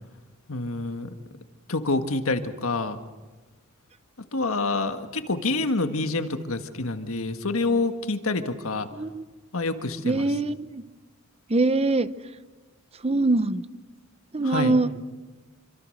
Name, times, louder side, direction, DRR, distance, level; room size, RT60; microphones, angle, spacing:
voice 1, 0.5-1.1 1.7-3.0 4.3-8.9 9.5-10.3 14.4-14.8, left 3 dB, 75° left, 8 dB, 1.7 m, -27 dB
voice 2, 8.9-9.2 10.0-10.8 11.5-12.1 13.0-13.6 14.3-14.9, right 2 dB, 30° right, 14 dB, 0.8 m, -23 dB
27.0 x 25.0 x 6.6 m, 1.2 s
head